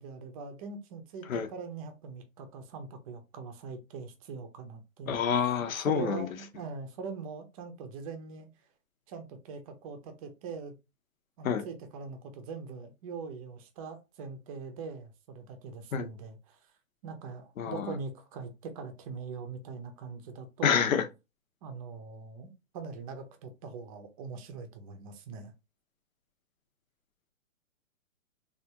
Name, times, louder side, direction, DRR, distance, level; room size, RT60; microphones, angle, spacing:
voice 1, 0.0-5.2 5.9-8.5 9.1-10.7 11.4-16.7 17.0-20.9 21.6-25.5, right 5 dB, 25° right, 0.6 m, -42 dB
voice 2, 5.1-6.3 11.4-11.6 15.9-16.1 17.6-17.9 20.6-21.0, left 7 dB, 75° left, 0.8 m, -27 dB
3.4 x 2.4 x 2.8 m
hypercardioid pair, 140°, 41 cm